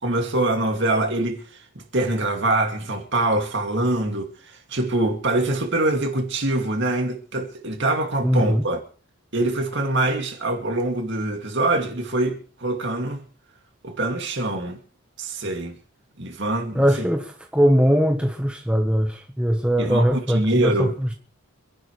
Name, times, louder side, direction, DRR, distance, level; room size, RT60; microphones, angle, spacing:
voice 1, 0.0-1.4 1.9-8.8 9.3-13.2 13.8-14.8 15.2-15.8 16.2-16.8 19.8-20.9, right 2 dB, 55° right, 2.5 m, -24 dB
voice 2, 8.2-8.7 16.7-21.1, equal, 5° right, 1.3 m, -21 dB
27.0 x 11.5 x 3.3 m
head